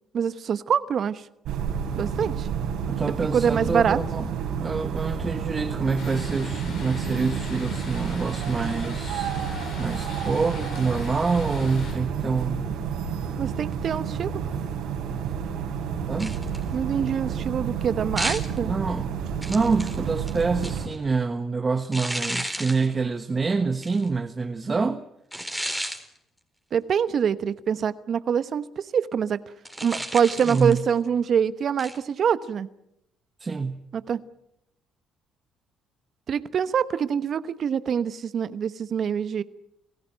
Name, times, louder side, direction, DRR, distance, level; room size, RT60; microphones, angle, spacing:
voice 1, 0.1-1.2 2.0-2.5 3.3-4.0 13.4-14.3 16.7-18.7 26.7-28.7 28.9-29.4 29.8-32.7 33.9-34.2 36.3-39.4, right 7 dB, 55° right, 14 dB, 1.1 m, -25 dB
sound 1, 1.5-20.9, right 7 dB, 75° right, 4.9 m, -30 dB
voice 2, 2.9-4.3 4.6-9.4 9.8-12.7 16.1-16.4 18.6-19.2 19.5-25.0 30.4-30.9 33.4-33.8, right 4 dB, 30° right, 7 dB, 1.3 m, -26 dB
sound 2, 6.0-11.9, left 4 dB, 70° left, 7.2 m, -42 dB
sound 3, 16.2-16.7 18.2-18.6 19.4-21.0 21.9-22.9 23.8-24.1 25.3-26.0 29.6-30.9 31.8-32.0, equal, ahead, 4.1 m, -32 dB
29.0 x 15.5 x 9.0 m, 0.80 s
supercardioid pair, 65°, 0 cm